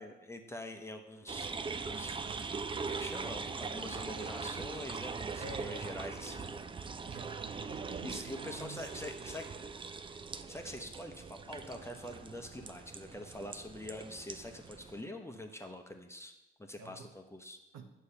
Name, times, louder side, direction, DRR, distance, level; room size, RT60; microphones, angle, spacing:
voice 1, 0.0-6.7 8.0-9.6 10.5-16.3 16.6-17.6, left 1 dB, 10° left, 4 dB, 0.9 m, -45 dB
sound 1, 1.3-15.0, right 4 dB, 20° right, 0.4 m, -41 dB
voice 2, 5.4-6.0 7.0-9.3 13.1-13.2 16.8-17.1 17.7-17.8, right 4 dB, 60° right, 5 dB, 0.9 m, -48 dB
sound 2, 7.1-11.3 11.6-15.6, right 2 dB, 85° right, 2.0 m, -62 dB
9.5 x 6.5 x 2.8 m, 0.96 s
hypercardioid pair, 50°, 29 cm